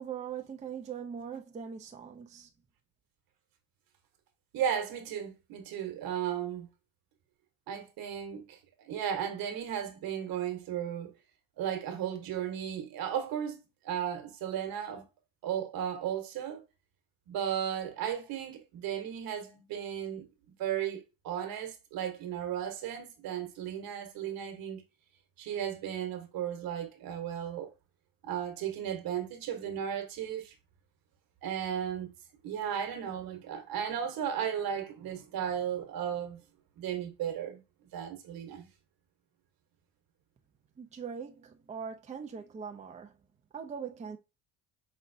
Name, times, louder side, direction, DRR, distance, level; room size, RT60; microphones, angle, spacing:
voice 1, 0.0-2.5 40.8-43.1 43.5-44.2, right 7 dB, 20° right, 0.5 m, -41 dB
voice 2, 4.5-6.7 7.7-8.6 8.8-11.1 11.6-15.1 15.4-16.6 17.3-20.3 20.6-24.8 25.4-27.7 28.2-30.5 31.4-32.1 32.4-36.4 36.8-37.6 37.9-38.7, right 9 dB, 65° right, 1.3 m, -35 dB
5.4 x 3.1 x 2.6 m
cardioid pair, 115°, 37 cm